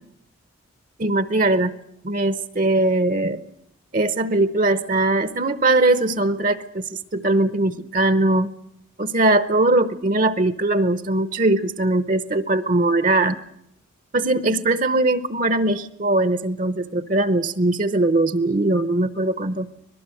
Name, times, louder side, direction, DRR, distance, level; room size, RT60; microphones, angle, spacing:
voice 1, 1.0-1.7 2.0-3.4 3.9-8.5 9.0-13.4 14.1-19.7, right 2 dB, 40° right, 12 dB, 0.8 m, -20 dB
25.5 x 19.0 x 7.7 m, 0.79 s
head